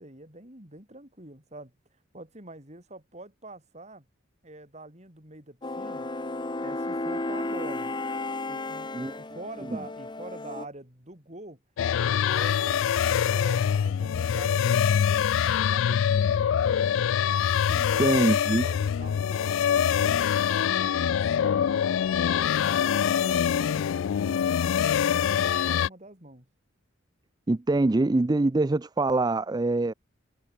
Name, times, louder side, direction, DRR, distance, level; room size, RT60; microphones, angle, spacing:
voice 1, 0.0-1.7 2.1-4.1 4.4-6.1 6.6-7.9 8.5-11.6 12.0-17.0 17.6-18.2 18.6-20.2 20.8-21.7 22.1-24.8 25.1-26.5, right 2 dB, 35° right, 6.9 m, -45 dB
sound 1, 5.6-10.7, left 2 dB, 25° left, 1.0 m, -33 dB
sound 2, 11.8-25.9, left 8 dB, 75° left, 0.3 m, -24 dB
voice 2, 18.0-18.6 27.5-29.9, right 2 dB, 20° right, 0.4 m, -24 dB
head